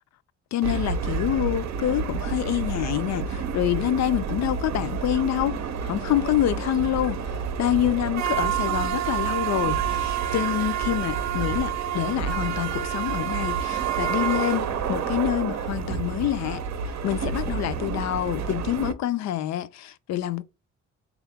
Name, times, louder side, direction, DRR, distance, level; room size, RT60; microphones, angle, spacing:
voice 1, 0.5-7.2 7.6-16.6 17.0-20.4, left 12 dB, 65° left, 0.5 m, -26 dB
sound 1, 0.6-18.9, right 7 dB, 65° right, 0.6 m, -28 dB
3.6 x 2.4 x 3.5 m
cardioid pair, 90°, 30 cm